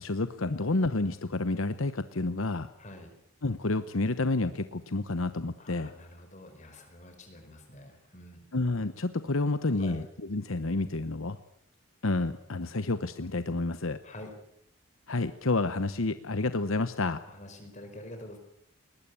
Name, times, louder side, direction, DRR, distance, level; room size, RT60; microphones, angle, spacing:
voice 1, 0.0-2.7 3.4-5.9 8.5-10.0 10.3-11.4 12.0-14.0 15.1-17.2, left 2 dB, 70° left, 11 dB, 1.0 m, -29 dB
voice 2, 2.8-3.1 5.6-8.5 9.8-10.0 14.0-14.3 17.3-18.4, left 1 dB, 35° left, 5 dB, 5.1 m, -47 dB
21.5 x 20.0 x 8.4 m, 0.73 s
head